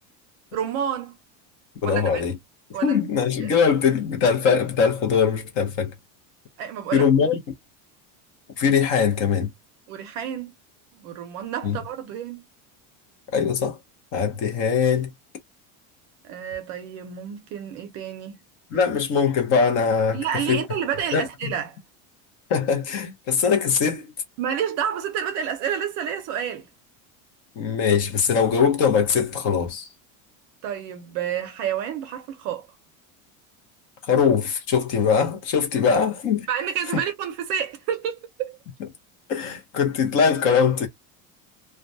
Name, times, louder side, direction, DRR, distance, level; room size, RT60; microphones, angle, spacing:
voice 1, 0.5-1.2 1.8-2.2 2.7-3.0 3.4-3.5 6.6-7.1 9.9-10.5 10.9-12.4 14.5-14.6 16.2-18.4 20.1-21.8 24.4-26.7 30.6-32.7 36.5-38.6, right 8 dB, 40° right, 0.6 m, -29 dB
voice 2, 1.8-2.3 2.8-5.9 6.9-7.4 8.6-9.5 11.6-11.8 13.3-13.8 14.1-15.1 18.7-20.6 21.1-21.2 22.5-24.1 27.6-29.9 34.1-36.5 39.3-40.9, left 6 dB, 40° left, 0.7 m, -21 dB
2.2 x 2.2 x 2.6 m
cardioid pair, 175°, 40 cm